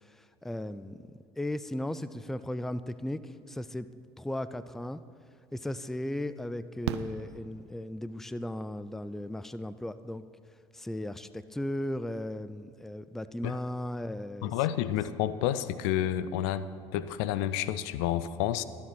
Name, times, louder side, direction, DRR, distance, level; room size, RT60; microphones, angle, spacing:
voice 1, 0.1-1.0 1.4-3.9 4.2-5.0 5.5-10.2 10.7-14.5, left 1 dB, 5° left, 14 dB, 0.4 m, -36 dB
Fireworks, 5.2-5.3 6.8-8.2 9.9-10.0 10.2-10.3, right 10 dB, 85° right, 0.5 m, -37 dB
voice 2, 14.4-16.6 16.9-18.6, left 11 dB, 70° left, 14 dB, 0.5 m, -29 dB
12.5 x 7.4 x 6.0 m, 2.2 s
hypercardioid pair, 70°, 14 cm